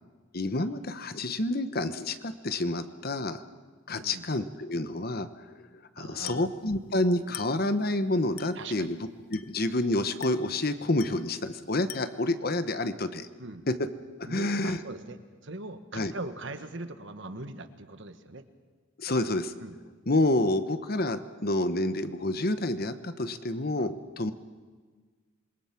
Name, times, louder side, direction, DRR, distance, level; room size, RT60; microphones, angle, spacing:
voice 1, 0.3-3.4 3.9-5.3 6.0-9.0 9.3-13.3 13.7-13.8 14.2-14.8 15.9-16.1 19.0-19.5 20.1-24.3, left 2 dB, 45° left, 11 dB, 1.1 m, -28 dB
voice 2, 3.9-4.3 6.0-6.5 8.5-8.9 13.4-13.7 14.3-18.4 19.6-19.8, right 2 dB, 60° right, 9 dB, 1.4 m, -41 dB
Glass, 6.3-6.6 7.3-7.7 8.4-8.7 9.3-9.7 10.2-10.6 11.0-11.3 11.9-12.3, left 12 dB, 85° left, 0.8 m, -44 dB
27.5 x 21.5 x 6.0 m, 1.5 s
head